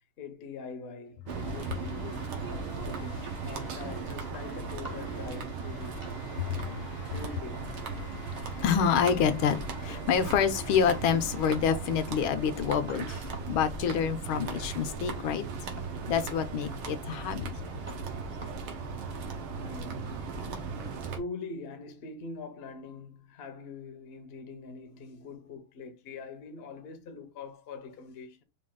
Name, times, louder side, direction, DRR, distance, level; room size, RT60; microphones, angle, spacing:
voice 1, 0.2-6.0 7.0-7.7 19.4-20.3 21.1-28.4, left 4 dB, 65° left, 0.6 m, -43 dB
sound 1, 1.3-21.2, right 4 dB, 90° right, 1.8 m, -37 dB
sound 2, 2.1-19.3, right 1 dB, 40° right, 0.6 m, -51 dB
voice 2, 6.3-7.1 8.0-15.4 16.1-17.5, left 7 dB, 85° left, 1.5 m, -28 dB
5.3 x 2.3 x 3.7 m
omnidirectional pair, 2.3 m